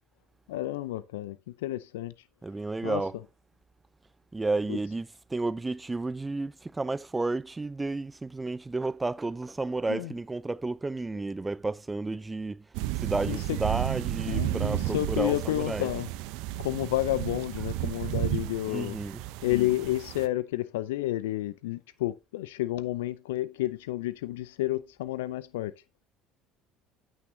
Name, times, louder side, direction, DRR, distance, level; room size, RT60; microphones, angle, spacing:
voice 1, 0.5-2.1 2.8-3.0 4.7-4.8 9.9-10.1 13.2-13.6 14.3-16.1 16.6-19.0 19.4-25.7, left 15 dB, 75° left, 0.5 m, -30 dB
voice 2, 2.4-3.2 4.3-12.6 13.0-15.9 18.7-19.2, right 3 dB, 15° right, 0.4 m, -32 dB
sound 1, 12.7-20.3, right 15 dB, 70° right, 0.7 m, -33 dB
9.0 x 8.9 x 2.7 m
hypercardioid pair, 65°, 0 cm